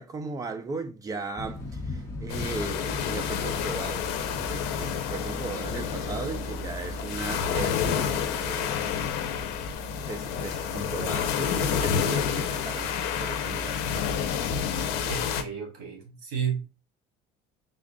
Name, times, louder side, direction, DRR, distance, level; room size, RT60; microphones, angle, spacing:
voice 1, 0.0-9.4 10.1-13.8, right 3 dB, 20° right, 0.5 m, -37 dB
Thunder / Rain, 1.4-9.8, left 2 dB, 15° left, 1.0 m, -42 dB
sound 1, 2.3-15.4, left 7 dB, 70° left, 0.7 m, -29 dB
voice 2, 15.0-16.7, right 7 dB, 65° right, 1.8 m, -32 dB
3.7 x 2.5 x 3.6 m
cardioid pair, 140°, 18 cm